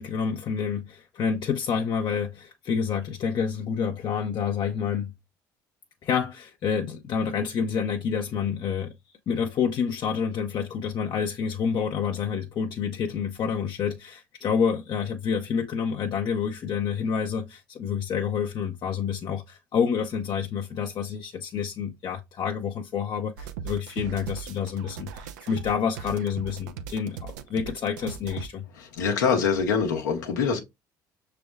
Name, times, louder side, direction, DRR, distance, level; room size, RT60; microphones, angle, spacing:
voice 1, 0.0-5.1 6.0-8.9 9.3-28.7, left 6 dB, 50° left, 0.6 m, -28 dB
sound 1, 23.4-28.5, right 8 dB, 85° right, 0.5 m, -38 dB
voice 2, 28.7-30.6, left 6 dB, 85° left, 1.0 m, -24 dB
6.0 x 3.4 x 2.3 m
hypercardioid pair, 60°, 10 cm